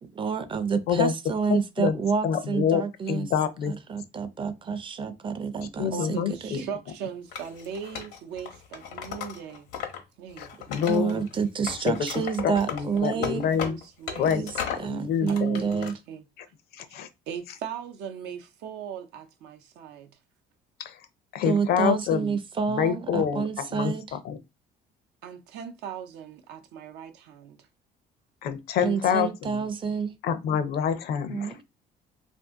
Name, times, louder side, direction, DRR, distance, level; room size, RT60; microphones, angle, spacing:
voice 1, 0.0-3.3 3.7-6.2 6.4-6.7 10.9-13.5 14.2-14.5 14.8-16.0 21.5-24.2 28.8-30.1 31.3-31.6, right 6 dB, 30° right, 0.5 m, -28 dB
voice 2, 1.5-2.8 3.1-3.8 5.8-6.6 10.4-11.2 11.9-12.0 12.4-13.8 14.2-15.6 16.7-17.1 20.8-21.0 21.3-22.3 22.7-24.4 28.4-29.6 30.2-31.5, left 8 dB, 70° left, 0.6 m, -27 dB
voice 3, 5.5-9.7 10.2-11.1 12.4-14.3 15.3-16.2 16.9-17.0 17.3-20.1 25.2-27.6, right 8 dB, 85° right, 0.6 m, -40 dB
Wood, 7.3-10.0 10.3-11.3 11.6-14.9 15.3-15.9, left 8 dB, 90° left, 1.0 m, -36 dB
2.7 x 2.5 x 3.5 m
cardioid pair, 110°, 17 cm